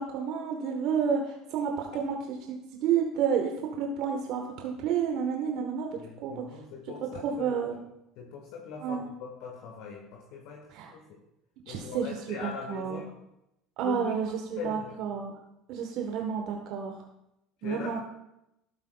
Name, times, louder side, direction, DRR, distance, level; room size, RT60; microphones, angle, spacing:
voice 1, 0.0-2.1 2.5-3.5 3.8-5.9 6.2-6.4 7.2-7.8 8.8-9.1 10.7-10.9 11.7-13.0 13.8-15.4 15.7-17.0 17.6-18.0, right 7 dB, 60° right, 2 dB, 1.1 m, -30 dB
voice 2, 6.0-7.6 8.1-11.2 11.7-13.1 13.8-14.2 14.6-14.9 17.6-18.0, left 5 dB, 65° left, 1 dB, 1.5 m, -41 dB
12.0 x 11.5 x 2.3 m, 0.87 s
hypercardioid pair, 75°, 0 cm